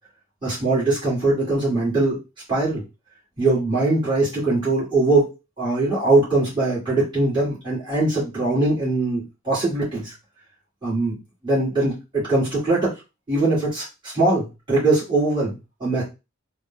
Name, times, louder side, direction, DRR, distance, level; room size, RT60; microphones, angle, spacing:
voice 1, 0.4-2.2 2.5-2.8 3.4-10.1 10.8-11.1 11.4-12.9 13.3-15.5 15.8-16.0, right 2 dB, 25° right, -10 dB, 1.8 m, -21 dB
3.6 x 2.1 x 3.7 m, 0.26 s
head